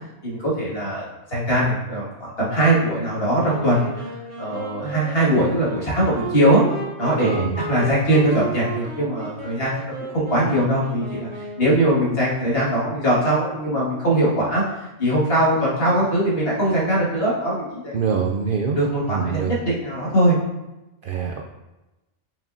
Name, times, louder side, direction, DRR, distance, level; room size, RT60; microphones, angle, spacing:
voice 1, 0.2-3.9 4.4-6.6 7.0-9.7 10.1-11.3 11.6-14.6 15.0-18.0 18.8-20.4, right 1 dB, 50° left, -6 dB, 2.1 m, -21 dB
Wind instrument woodwind instrument, 3.4-11.8, right 2 dB, 85° right, 1.8 m, -34 dB
voice 2, 7.2-7.6 17.9-18.8 19.1-19.6 21.0-21.4, right 6 dB, 60° right, 2 dB, 0.6 m, -24 dB
6.9 x 5.6 x 2.6 m, 1.0 s
omnidirectional pair, 1.3 m